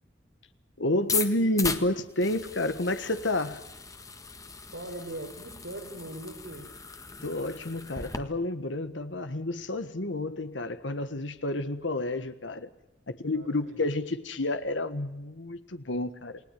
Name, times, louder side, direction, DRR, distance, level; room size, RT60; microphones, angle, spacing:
voice 1, 0.8-3.6 7.2-12.7 13.1-16.4, left 1 dB, 90° left, 10 dB, 1.5 m, -30 dB
sound 1, 1.0-8.2, left 5 dB, 20° left, 1.6 m, -37 dB
voice 2, 4.7-6.7 13.3-13.8, right 1 dB, 90° right, 1 dB, 5.1 m, -40 dB
29.5 x 19.5 x 9.3 m, 0.89 s
head